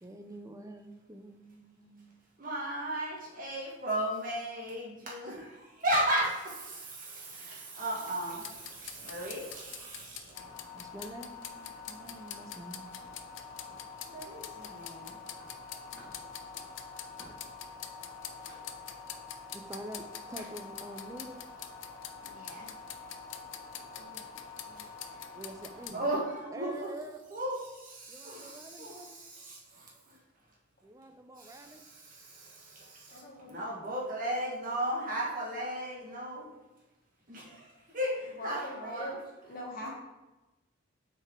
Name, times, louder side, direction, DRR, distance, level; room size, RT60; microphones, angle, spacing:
voice 1, 0.0-2.2 10.7-13.0 19.5-21.5 25.3-26.1 26.5-27.2 28.1-29.2 30.8-31.9, right 1 dB, 15° right, 6 dB, 0.5 m, -46 dB
voice 2, 2.4-10.4 14.0-15.1 18.4-18.6 22.2-22.8 25.0-25.2 25.9-26.9 27.3-30.2 31.4-33.2 33.5-36.5 37.3-39.1, right 1 dB, 45° right, -4 dB, 1.6 m, -36 dB
sound 1, 8.3-26.0, left 9 dB, 80° left, 0.5 m, -47 dB
sound 2, 10.3-25.9, left 4 dB, 10° left, 1.8 m, -48 dB
voice 3, 33.1-33.8 38.4-39.9, equal, 50° left, -2 dB, 1.6 m, -43 dB
6.5 x 4.6 x 3.7 m, 1.1 s
head